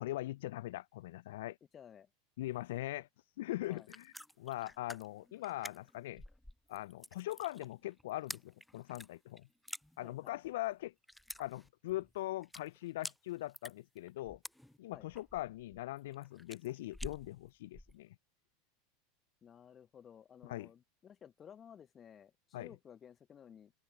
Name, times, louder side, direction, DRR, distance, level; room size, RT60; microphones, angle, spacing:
voice 1, 0.0-1.6 2.4-3.1 3.4-6.2 6.7-9.5 10.0-10.9 11.4-14.4 14.8-18.1 20.4-20.7 22.5-22.7, left 16 dB, 65° left, 0.5 m, -41 dB
voice 2, 1.7-2.1 3.7-3.9 10.0-10.4 14.9-15.1 19.4-23.7, left 8 dB, 30° left, 1.2 m, -56 dB
sound 1, 3.6-18.0, left 1 dB, 5° left, 0.3 m, -50 dB
hypercardioid pair, 85°, 0 cm